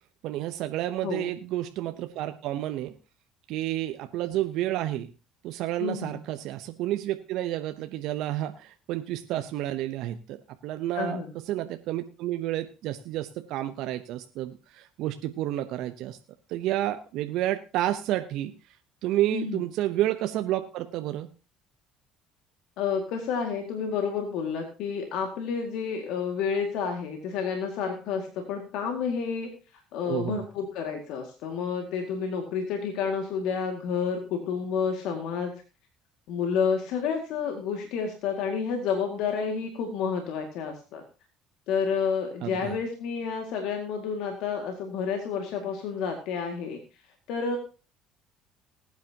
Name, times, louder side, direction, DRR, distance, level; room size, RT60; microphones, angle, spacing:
voice 1, 0.2-2.9 3.5-5.1 5.4-16.2 16.5-18.5 19.0-21.3 30.1-30.4 42.4-42.8, right 14 dB, 65° right, 9 dB, 0.8 m, -30 dB
voice 2, 5.8-6.2 10.9-11.3 19.3-19.6 22.8-29.5 29.9-35.5 36.3-41.0 41.7-46.8 47.3-47.6, left 6 dB, 70° left, 4 dB, 2.1 m, -30 dB
19.5 x 9.4 x 2.9 m, 0.33 s
hypercardioid pair, 65°, 0 cm